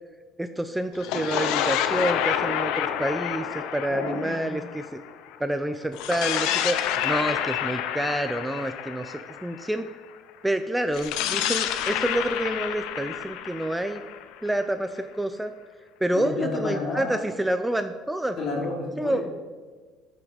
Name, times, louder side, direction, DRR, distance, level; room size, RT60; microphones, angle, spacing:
voice 1, 0.4-5.0 5.4-6.8 7.0-9.9 10.4-14.0 14.4-15.5 16.0-18.4 19.0-19.2, right 1 dB, 5° right, 8 dB, 0.5 m, -28 dB
sound 1, 0.9-5.3 5.9-9.9 10.9-14.7, left 10 dB, 80° left, 0.6 m, -29 dB
voice 2, 3.9-4.5 16.1-17.2 18.4-19.2, left 3 dB, 55° left, -2 dB, 2.9 m, -30 dB
13.5 x 5.8 x 4.0 m, 1.4 s
cardioid pair, 115°, 0 cm